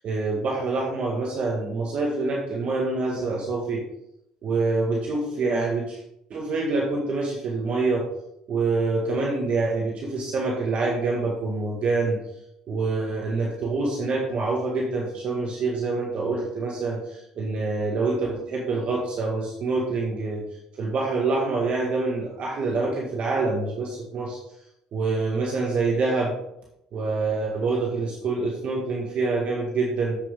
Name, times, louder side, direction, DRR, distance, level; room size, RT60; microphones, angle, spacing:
voice 1, 0.0-3.8 4.4-6.0 6.3-8.0 8.5-12.2 12.7-20.4 20.8-24.4 24.9-26.3 26.9-30.2, right 3 dB, 50° right, -2 dB, 1.8 m, -26 dB
8.0 x 7.0 x 3.7 m, 0.80 s
cardioid pair, 105°, 2 cm